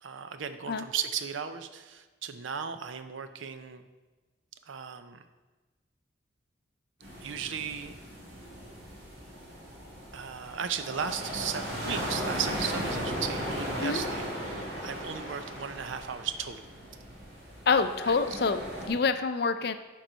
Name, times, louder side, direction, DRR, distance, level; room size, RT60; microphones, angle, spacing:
voice 1, 0.0-3.9 4.7-5.2 7.2-7.9 10.1-16.6 18.0-18.1, right 7 dB, 90° right, 10 dB, 0.5 m, -36 dB
sound 1, 7.0-18.9, equal, 60° right, 2.2 m, -37 dB
voice 2, 17.7-19.7, left 4 dB, 55° left, 10 dB, 0.4 m, -27 dB
10.5 x 4.6 x 4.0 m, 1.2 s
head